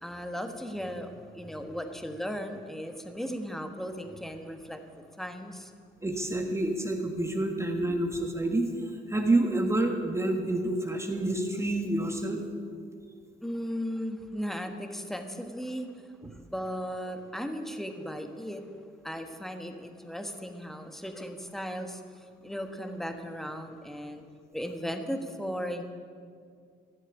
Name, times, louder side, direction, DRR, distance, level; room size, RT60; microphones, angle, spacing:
voice 1, 0.0-5.7 13.4-15.9 16.3-18.8 19.0-24.2 24.5-25.8, equal, ahead, 6 dB, 1.4 m, -36 dB
voice 2, 6.0-8.7 9.1-12.4, right 2 dB, 15° right, 2 dB, 1.6 m, -28 dB
14.5 x 7.3 x 9.9 m, 2.2 s
cardioid pair, 90°, 20 cm